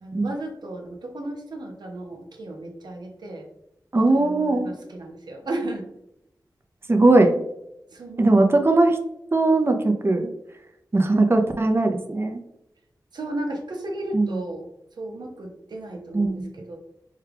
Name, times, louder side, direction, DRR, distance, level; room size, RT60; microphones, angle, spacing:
voice 1, 0.0-3.5 4.1-5.9 7.9-8.5 13.1-14.7 15.0-16.8, right 1 dB, 75° right, 2 dB, 0.8 m, -34 dB
voice 2, 3.9-4.7 6.9-7.4 8.2-9.0 9.3-10.3 10.9-12.4 14.1-14.4 16.1-16.3, right 2 dB, 35° right, 5 dB, 0.6 m, -19 dB
4.6 x 2.3 x 3.4 m, 0.81 s
cardioid pair, 55°, 7 cm